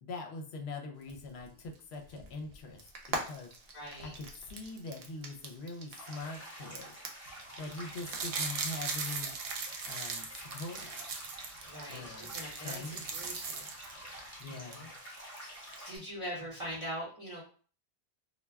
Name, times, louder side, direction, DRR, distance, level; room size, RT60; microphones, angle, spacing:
voice 1, 0.0-3.5 4.0-6.9 7.6-9.3 9.9-10.9 11.9-13.0 14.4-14.9, left 3 dB, 70° left, 3 dB, 0.8 m, -43 dB
Frying (food), 1.0-15.8, right 2 dB, 55° right, 0.4 m, -48 dB
voice 2, 3.7-4.1 7.8-7.9 11.6-13.7 14.5-14.9 15.4-17.4, equal, 30° right, -6 dB, 0.8 m, -43 dB
sound 1, 5.9-16.0, equal, 15° left, 0.9 m, -49 dB
sound 2, 7.8-11.5 11.9-12.0 12.2-14.1 14.4-14.5, right 5 dB, 75° right, 0.8 m, -38 dB
2.2 x 2.2 x 3.3 m, 0.42 s
omnidirectional pair, 1.2 m